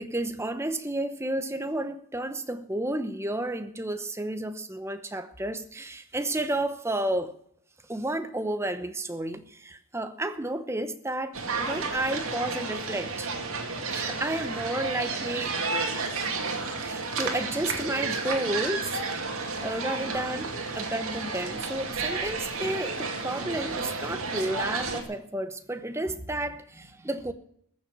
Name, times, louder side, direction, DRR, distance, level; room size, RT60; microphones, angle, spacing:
voice 1, 0.0-7.3 7.9-13.3 13.9-15.6 16.7-19.0 19.6-27.3, right 1 dB, 10° right, 0.9 m, -31 dB
sound 1, 11.3-25.0, right 4 dB, 70° right, 2.3 m, -32 dB
14.5 x 7.0 x 9.9 m
head